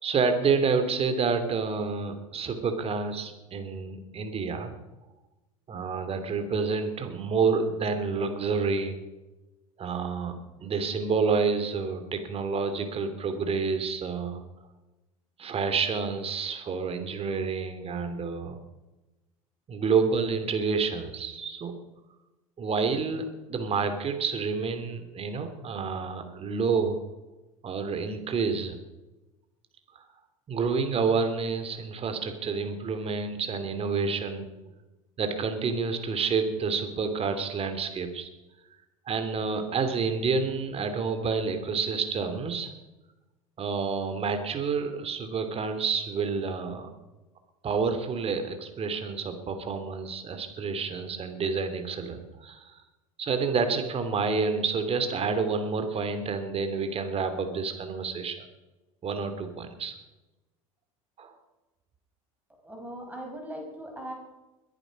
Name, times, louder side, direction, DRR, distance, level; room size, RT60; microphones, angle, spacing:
voice 1, 0.0-4.7 5.7-9.0 9.8-10.3 10.6-14.4 15.4-18.6 19.7-21.7 22.6-27.0 27.6-28.8 30.5-34.7 35.2-38.3 39.1-42.7 43.6-46.9 47.6-52.8 53.2-58.4 59.0-60.0 61.2-61.3, right 5 dB, 35° right, 8 dB, 2.9 m, -29 dB
voice 2, 62.6-64.1, right 1 dB, 10° right, 1 dB, 6.0 m, -39 dB
21.5 x 11.0 x 5.3 m, 1.1 s
figure-of-eight pair, 75°, 18 cm